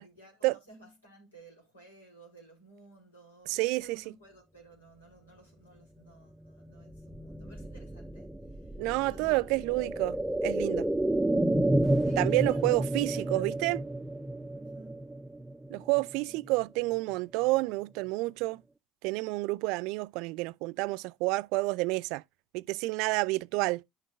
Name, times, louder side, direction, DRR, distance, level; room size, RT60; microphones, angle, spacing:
voice 1, 0.0-9.7 12.0-12.8 13.1-13.7 14.5-15.1 16.3-16.6, right 2 dB, 85° left, 4.2 m, -55 dB
voice 2, 3.5-4.0 8.8-10.2 10.4-10.9 12.2-13.8 15.7-18.6 19.0-22.2 22.5-23.8, right 23 dB, 60° right, 0.4 m, -29 dB
sound 1, 6.8-16.6 16.9-17.0, right 1 dB, 5° right, 0.6 m, -31 dB
10.5 x 6.3 x 2.6 m
figure-of-eight pair, 65°, 0 cm